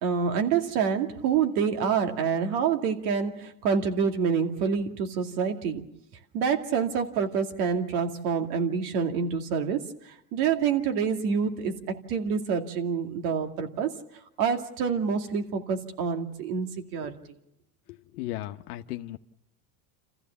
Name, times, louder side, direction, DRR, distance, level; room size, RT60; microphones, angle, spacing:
voice 1, 0.0-5.8 6.3-11.7 12.1-13.9 14.4-17.2, right 6 dB, 75° right, 5 dB, 2.5 m, -27 dB
voice 2, 17.9-19.2, left 15 dB, 80° left, 7 dB, 1.0 m, -36 dB
28.5 x 15.0 x 7.1 m, 0.83 s
supercardioid pair, 125°, 45 cm